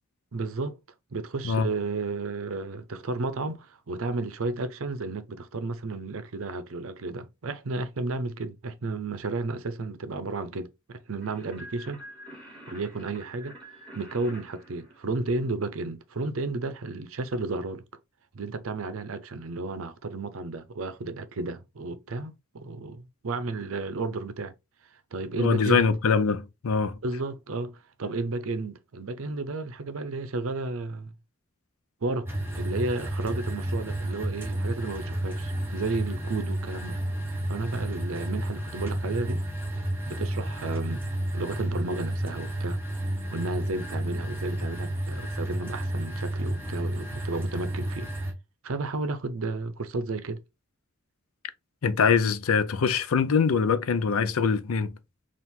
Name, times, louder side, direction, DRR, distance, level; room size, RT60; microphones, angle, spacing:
voice 1, 0.3-0.8 1.1-12.0 12.7-13.5 14.0-17.8 18.3-24.5 25.1-25.8 27.0-31.1 32.0-32.3 32.5-37.0 37.5-39.4 40.1-41.0 41.3-42.8 43.3-48.1 48.6-50.4, right 3 dB, 70° right, 0.6 m, -32 dB
sound 1, 11.2-15.7, right 1 dB, 5° left, 2.5 m, -47 dB
voice 2, 25.4-26.9 51.8-55.0, left 5 dB, 80° left, 0.5 m, -23 dB
sound 2, 32.3-48.3, right 1 dB, 10° right, 1.0 m, -31 dB
4.4 x 2.5 x 3.5 m
head